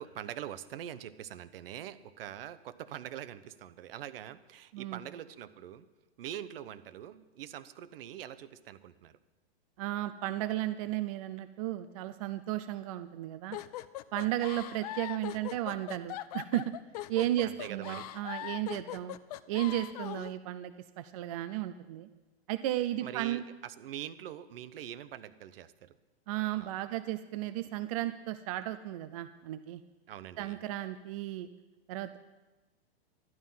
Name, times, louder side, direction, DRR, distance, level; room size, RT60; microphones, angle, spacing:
voice 1, 0.0-5.9 6.2-9.2 14.2-14.3 17.4-18.1 23.0-25.9 26.6-27.0 30.1-30.6, right 11 dB, 65° right, 14 dB, 0.9 m, -44 dB
voice 2, 9.8-13.6 14.1-16.7 17.1-19.2 19.5-22.1 22.5-23.4 26.3-29.8 30.4-31.5 31.9-32.2, right 14 dB, 35° right, 9 dB, 0.5 m, -34 dB
sound 1, 13.5-20.3, left 14 dB, 40° left, 0.4 m, -41 dB
12.0 x 11.0 x 5.6 m, 1.2 s
hypercardioid pair, 155°, 31 cm